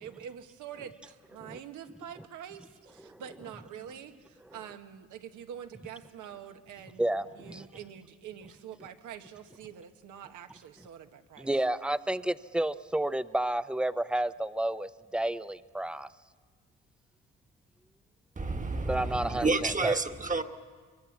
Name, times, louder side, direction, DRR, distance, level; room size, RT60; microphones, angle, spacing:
voice 1, 0.0-11.5, right 9 dB, 80° right, 7 dB, 1.5 m, -46 dB
voice 2, 7.0-7.7 11.4-16.1 18.9-20.0, right 1 dB, 5° right, 14 dB, 0.6 m, -31 dB
voice 3, 18.4-20.4, right 3 dB, 25° right, 5 dB, 1.4 m, -29 dB
24.0 x 23.0 x 7.3 m, 1.5 s
cardioid pair, 90°, 30 cm